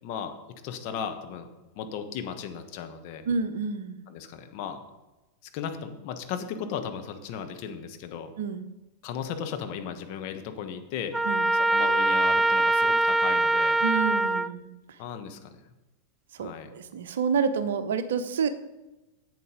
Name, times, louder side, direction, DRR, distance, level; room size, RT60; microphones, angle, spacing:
voice 1, 0.0-1.5 1.7-3.3 4.1-4.8 5.5-8.3 9.0-11.2 11.7-13.8 15.0-15.7 16.4-16.7, left 7 dB, 45° left, 6 dB, 1.1 m, -36 dB
voice 2, 3.3-4.0 8.4-8.7 11.3-11.5 13.8-15.0 16.3-18.5, right 6 dB, 60° right, 11 dB, 0.7 m, -29 dB
Trumpet, 11.1-14.5, right 2 dB, 5° right, 0.3 m, -23 dB
11.0 x 8.0 x 3.8 m, 1.1 s
figure-of-eight pair, 90°, 0 cm